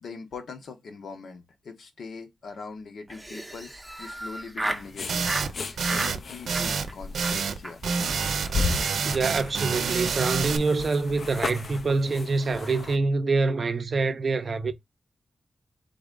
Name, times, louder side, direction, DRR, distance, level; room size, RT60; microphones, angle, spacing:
voice 1, 0.0-5.5 5.9-7.8, left 4 dB, 70° left, 1.1 m, -42 dB
Laughter, 3.1-4.9 5.2-5.5 5.8-6.2 6.5-6.9 7.2-7.4 7.6-7.7 8.0-8.1 8.4-8.5 8.8-9.1, right 1 dB, 5° right, 0.7 m, -34 dB
sound 1, 4.6-13.0, left 4 dB, 50° left, 0.5 m, -36 dB
sound 2, 5.1-5.5 5.8-6.2 6.5-6.9 7.1-7.6 7.8-10.6, right 5 dB, 85° right, 0.6 m, -27 dB
voice 2, 9.0-14.7, right 3 dB, 40° right, 0.6 m, -25 dB
3.9 x 3.6 x 3.8 m
wide cardioid pair, 170°, 0 cm